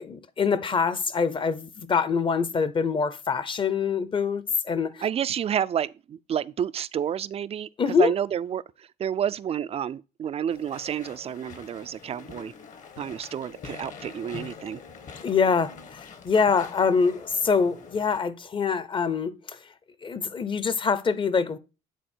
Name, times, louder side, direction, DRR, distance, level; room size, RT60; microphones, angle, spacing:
voice 1, 0.0-5.0 7.8-8.1 15.2-19.6 20.0-21.6, left 5 dB, 30° left, 0.7 m, -25 dB
voice 2, 5.0-12.5 13.0-14.8, right 9 dB, 35° right, 0.4 m, -30 dB
Walk footsteps / Chatter / Squeak, 10.5-18.2, left 5 dB, 50° left, 1.3 m, -44 dB
10.5 x 4.1 x 4.4 m
cardioid pair, 110°, 17 cm